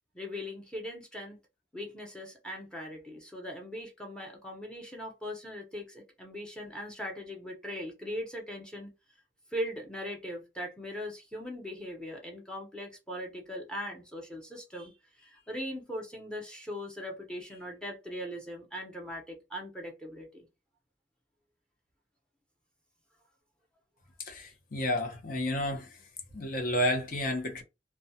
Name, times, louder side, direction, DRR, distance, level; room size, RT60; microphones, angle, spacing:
voice 1, 0.1-1.4 1.7-8.9 9.5-14.9 15.2-20.5, equal, 5° left, 0.8 m, -40 dB
voice 2, 24.2-25.9 26.3-27.6, left 1 dB, 50° left, 0.8 m, -31 dB
2.3 x 2.3 x 2.7 m
head